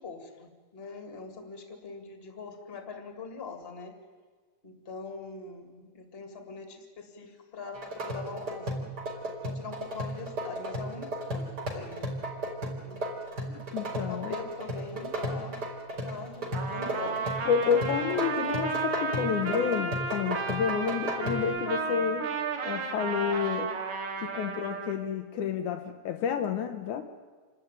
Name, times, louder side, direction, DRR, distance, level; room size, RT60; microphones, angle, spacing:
voice 1, 0.0-3.9 4.6-8.9 9.4-12.1 12.8-13.0 14.1-15.6 16.0-17.6 17.9-18.0 20.7-21.0, left 4 dB, 20° left, 5 dB, 2.3 m, -42 dB
sound 1, 7.7-21.4, right 1 dB, 30° right, 3.8 m, -35 dB
voice 2, 13.5-14.4 17.5-22.3 22.6-23.7 24.2-27.0, left 7 dB, 70° left, 6 dB, 2.2 m, -30 dB
Trumpet, 16.5-25.0, right 4 dB, 75° right, 3.9 m, -33 dB
28.0 x 12.5 x 9.1 m, 1.5 s
omnidirectional pair, 3.8 m